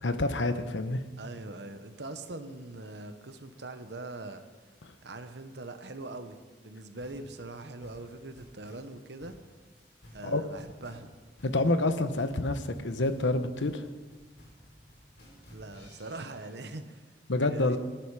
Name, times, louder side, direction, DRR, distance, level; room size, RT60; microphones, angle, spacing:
voice 1, 0.0-1.0 4.8-4.9 10.2-10.4 11.4-13.9 17.3-17.8, left 2 dB, 90° left, 10 dB, 1.0 m, -28 dB
voice 2, 1.2-4.4 5.0-6.4 6.6-9.3 10.1-11.1 15.5-17.0 17.4-17.8, right 2 dB, 70° right, 9 dB, 1.1 m, -42 dB
sound 1, 7.0-16.5, equal, 65° left, 5.6 m, -54 dB
18.5 x 10.5 x 4.9 m, 1.4 s
head